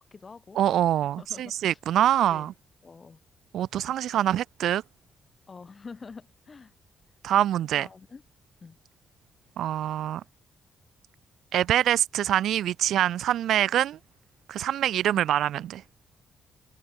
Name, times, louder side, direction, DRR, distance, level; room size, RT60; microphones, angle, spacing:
voice 1, 0.0-0.6 1.0-1.8 2.3-2.5 2.8-3.2 5.5-6.7 7.7-8.2 8.6-8.8 15.1-15.2, left 4 dB, 25° left, 3.1 m, -46 dB
voice 2, 0.6-2.5 3.5-4.8 7.2-7.9 9.6-10.2 11.5-14.0 14.5-15.8, right 11 dB, 70° right, 0.3 m, -25 dB
cardioid pair, 150°, 0 cm